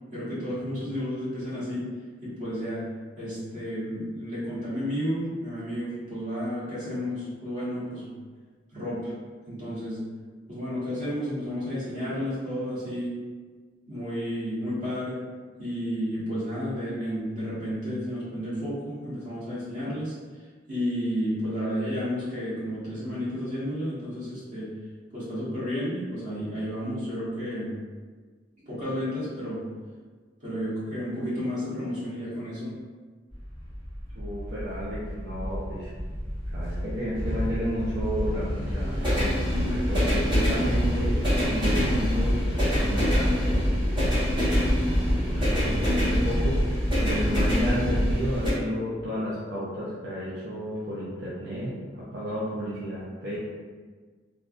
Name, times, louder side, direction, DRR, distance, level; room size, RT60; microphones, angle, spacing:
voice 1, 0.1-1.9 2.2-2.8 3.2-8.1 8.7-9.1 9.5-10.0 10.5-13.1 13.9-15.2 15.6-20.1 20.7-24.7 25.1-27.7 28.7-29.6 30.4-32.8, equal, 45° right, -11 dB, 1.4 m, -31 dB
sound 1, 33.3-48.5, equal, 25° right, 1.4 m, -25 dB
voice 2, 34.1-35.9 36.5-41.2 41.4-42.4 42.7-43.7 44.4-53.4, equal, 70° right, -9 dB, 0.6 m, -33 dB
3.4 x 2.3 x 2.5 m, 1.5 s
head